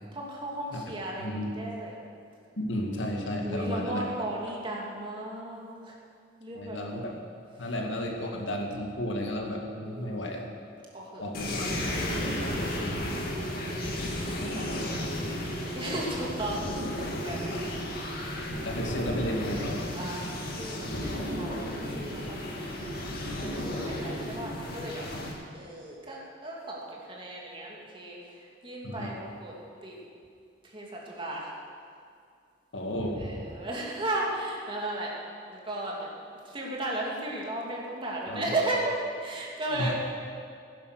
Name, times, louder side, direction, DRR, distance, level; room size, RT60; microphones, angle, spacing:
voice 1, 0.1-2.0 3.4-5.9 6.4-7.3 9.8-10.3 10.9-11.2 12.1-12.7 13.2-13.8 14.5-15.2 15.6-17.5 20.0-20.3 20.6-25.1 25.5-29.5 29.8-30.0 30.6-31.5 33.2-35.1 35.5-36.1 36.4-39.9, right 1 dB, 25° right, -3 dB, 2.7 m, -36 dB
voice 2, 1.2-1.5 2.6-4.1 6.5-7.1 7.6-10.4 11.2-12.6 13.8-14.0 15.9-16.0 17.5-17.7 18.6-19.9 20.9-21.1 28.8-29.1 32.7-33.3 38.3-38.5 39.7-39.9, equal, 90° left, 1 dB, 2.2 m, -33 dB
sound 1, 11.3-25.3, left 1 dB, 55° left, 2.2 m, -33 dB
16.0 x 10.5 x 6.5 m, 2.3 s
head